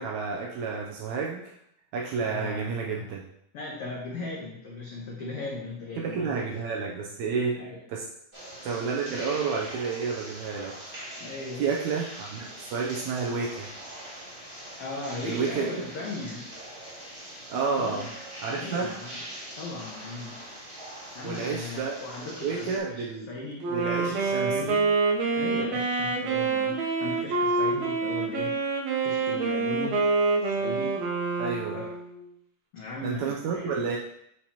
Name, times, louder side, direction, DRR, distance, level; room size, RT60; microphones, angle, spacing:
voice 1, 0.0-1.5 1.9-3.2 6.0-7.6 7.9-8.0 8.6-10.7 11.6-13.7 15.2-15.7 17.5-18.1 18.4-18.9 21.2-23.3 23.7-24.6 31.4-31.8 33.0-34.0, right 5 dB, 85° right, -1 dB, 1.7 m, -30 dB
voice 2, 2.2-3.0 3.5-6.5 7.5-7.8 11.2-11.7 14.8-16.5 17.8-18.0 18.5-19.2 19.6-20.4 21.1-23.6 24.0-24.8 25.4-28.6 29.0-30.1 30.4-31.0 31.7-31.9 32.7-33.8, left 3 dB, 80° left, -4 dB, 1.3 m, -37 dB
sound 1, 8.3-22.8, right 1 dB, 40° right, 0.7 m, -42 dB
Wind instrument woodwind instrument, 23.6-32.2, right 4 dB, 70° right, 2.0 m, -27 dB
8.7 x 4.5 x 2.9 m, 0.77 s
omnidirectional pair, 4.0 m